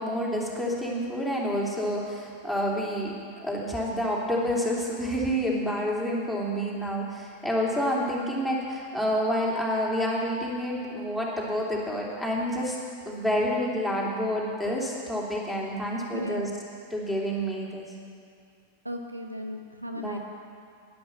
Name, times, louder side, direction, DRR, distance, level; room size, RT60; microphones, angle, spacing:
voice 1, 0.0-3.1 3.4-12.8 13.0-16.5 16.9-17.8 19.9-20.2, equal, ahead, -4 dB, 3.0 m, -28 dB
voice 2, 16.1-16.5 18.8-20.2, equal, 85° right, 4 dB, 1.0 m, -35 dB
11.0 x 10.5 x 7.5 m, 2.5 s
figure-of-eight pair, 90°, 0 cm